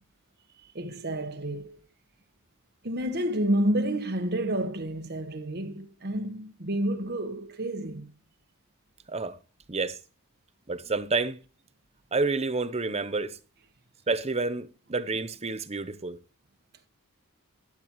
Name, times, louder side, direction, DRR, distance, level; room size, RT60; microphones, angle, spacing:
voice 1, 0.6-1.8 2.8-8.1, right 1 dB, 45° right, 1.3 m, -29 dB
voice 2, 10.7-11.4 12.1-13.4 14.1-16.2, right 3 dB, 30° right, 0.8 m, -29 dB
12.0 x 11.5 x 3.1 m
head